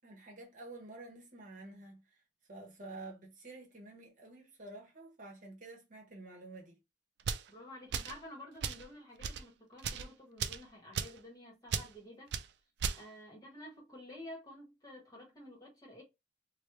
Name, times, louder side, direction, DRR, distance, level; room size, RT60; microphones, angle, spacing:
voice 1, 0.0-2.2 2.5-6.8, right 2 dB, 45° right, 1.1 m, -50 dB
sound 1, 7.2-7.5 7.9-8.2 8.6-8.8 9.2-9.4 9.8-10.1 10.4-10.6 10.9-11.2 11.7-11.9 12.3-12.5 12.8-13.0, right 7 dB, 65° right, 0.4 m, -36 dB
voice 2, 7.5-12.4 12.9-16.0, left 1 dB, 20° left, 1.2 m, -51 dB
3.1 x 2.2 x 3.0 m
head